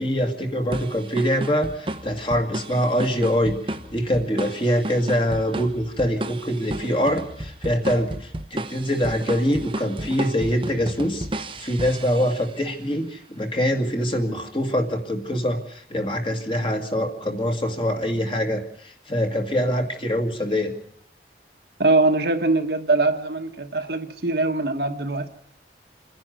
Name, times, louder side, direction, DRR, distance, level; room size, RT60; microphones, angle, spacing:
voice 1, 0.0-3.6 3.9-18.6 19.1-20.7, equal, 30° left, 4 dB, 2.1 m, -24 dB
sound 1, 0.7-12.7, right 1 dB, 30° right, 1.0 m, -33 dB
voice 2, 21.8-25.3, right 2 dB, 60° right, 6 dB, 1.5 m, -22 dB
27.5 x 10.5 x 9.3 m, 0.68 s
head